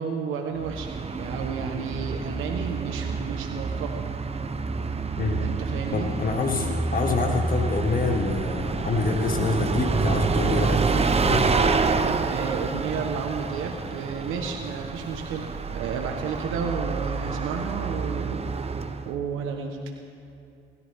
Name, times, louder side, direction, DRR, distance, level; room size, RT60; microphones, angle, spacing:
voice 1, 0.0-4.0 5.4-6.1 12.2-18.4 19.0-19.8, right 5 dB, 90° right, 3 dB, 1.3 m, -32 dB
Bus, 0.6-19.1, right 4 dB, 30° right, 1.0 m, -28 dB
voice 2, 5.9-11.5, left 4 dB, 45° left, 2 dB, 1.8 m, -26 dB
27.5 x 13.5 x 3.7 m, 2.6 s
cardioid pair, 90°, 20 cm